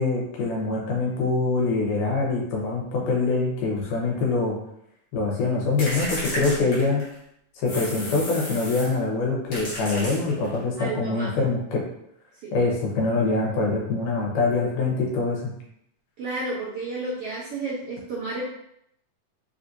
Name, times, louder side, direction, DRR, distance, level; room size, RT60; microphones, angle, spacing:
voice 1, 0.0-4.6 5.1-7.0 7.6-11.8 12.5-15.5, left 3 dB, 90° left, -2 dB, 2.5 m, -24 dB
sound 1, 5.8-7.2 7.7-9.0 9.5-10.6, equal, 55° left, 1.8 m, -33 dB
voice 2, 10.8-11.3 12.4-12.5 16.2-18.4, right 3 dB, 70° right, -6 dB, 1.5 m, -31 dB
5.3 x 2.7 x 2.5 m, 0.74 s
omnidirectional pair, 3.5 m